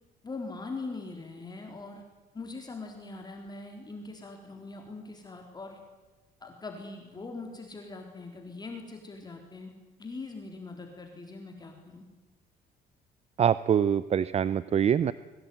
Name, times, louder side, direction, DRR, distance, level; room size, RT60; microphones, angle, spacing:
voice 1, 0.2-2.0 2.3-5.8 6.4-9.7 10.0-12.1, left 3 dB, 25° left, 3 dB, 3.8 m, -41 dB
voice 2, 13.4-15.1, right 8 dB, 40° right, 16 dB, 0.7 m, -24 dB
23.0 x 18.5 x 9.4 m, 1.2 s
cardioid pair, 110°, 17 cm